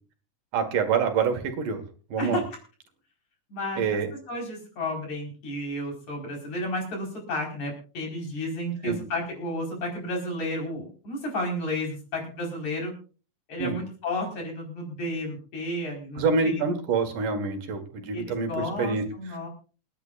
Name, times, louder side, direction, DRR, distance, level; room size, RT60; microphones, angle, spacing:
voice 1, 0.5-1.8 2.1-2.4 3.8-4.1 8.8-9.0 13.6-13.8 16.2-19.0, right 5 dB, 80° right, 5 dB, 3.3 m, -26 dB
voice 2, 3.5-4.0 4.3-12.9 13.5-16.6 18.1-19.5, left 1 dB, 60° left, 1 dB, 6.0 m, -32 dB
28.0 x 10.0 x 2.5 m, 0.37 s
omnidirectional pair, 3.6 m